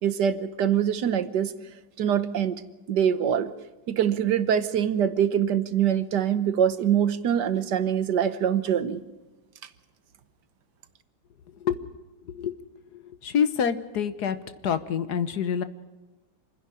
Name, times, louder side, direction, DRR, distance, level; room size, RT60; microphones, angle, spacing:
voice 1, 0.0-1.5 2.0-2.6 2.9-3.5 3.9-9.0, right 9 dB, 70° right, 13 dB, 1.5 m, -24 dB
voice 2, 12.9-14.4 14.6-15.6, left 7 dB, 65° left, 12 dB, 1.5 m, -26 dB
27.5 x 10.5 x 9.8 m, 1.2 s
omnidirectional pair, 2.0 m